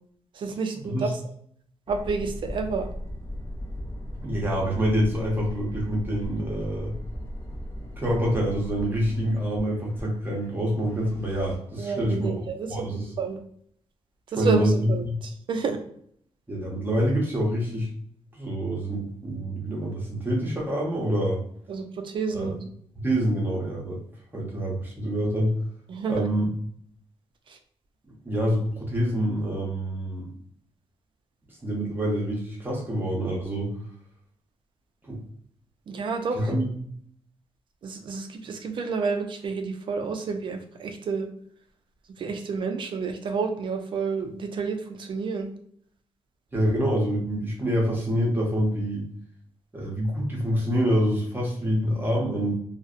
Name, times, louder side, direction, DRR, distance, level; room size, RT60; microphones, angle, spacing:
voice 1, 0.3-1.1 1.9-2.9 11.8-12.8 13.2-13.4 14.3-15.8 21.7-22.7 25.9-26.3 27.5-27.6 35.9-36.6 37.8-41.3 42.2-45.5, right 5 dB, 50° right, 5 dB, 0.4 m, -29 dB
sound 1, 1.9-11.6, equal, 25° left, 0.5 m, -37 dB
voice 2, 4.2-6.9 8.0-12.3 12.7-13.1 14.4-15.1 16.5-17.9 18.3-21.4 22.3-22.5 23.0-24.0 24.3-25.5 26.1-26.5 28.1-30.3 31.6-33.7 35.0-35.2 36.3-36.7 46.5-49.0 49.7-52.5, equal, 20° right, -3 dB, 0.7 m, -26 dB
2.6 x 2.0 x 2.4 m, 0.65 s
wide cardioid pair, 155°, 11 cm